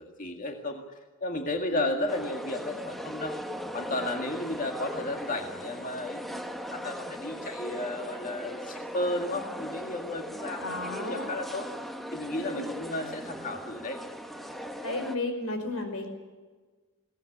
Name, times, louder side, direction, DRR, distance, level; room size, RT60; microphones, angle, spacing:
voice 1, 0.0-3.4 3.7-6.4 6.7-11.7 12.1-14.0, left 2 dB, 40° left, 3 dB, 2.0 m, -33 dB
voice 2, 1.6-2.0 10.6-11.3 12.3-12.7 14.8-16.1, left 2 dB, 85° left, 6 dB, 5.4 m, -34 dB
sound 1, 2.1-15.2, equal, ahead, 1.2 m, -38 dB
21.5 x 18.0 x 9.8 m, 1.4 s
head